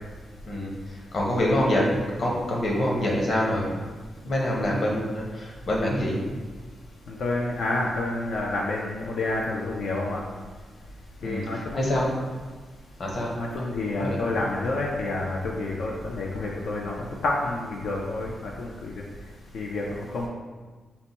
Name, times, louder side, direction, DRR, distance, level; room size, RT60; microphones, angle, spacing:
voice 1, 0.4-3.8 4.2-6.2 11.2-12.1 13.0-13.3 13.9-14.2, left 1 dB, 45° left, -2 dB, 0.9 m, -26 dB
voice 2, 7.1-10.2 11.2-12.2 13.3-18.9 19.5-19.8 20.1-20.3, left 2 dB, 80° left, -2 dB, 0.5 m, -29 dB
5.7 x 2.2 x 4.0 m, 1.4 s
wide cardioid pair, 150°, 0 cm